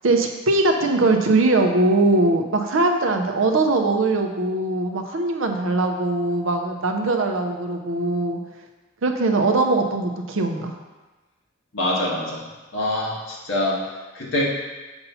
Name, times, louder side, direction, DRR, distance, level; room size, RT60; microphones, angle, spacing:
voice 1, 0.0-8.4 9.0-10.8, right 2 dB, 80° right, 4 dB, 0.6 m, -21 dB
voice 2, 11.7-12.5 12.7-13.9 14.1-14.4, left 1 dB, 80° left, -4 dB, 1.5 m, -24 dB
6.9 x 2.7 x 5.5 m, 1.2 s
head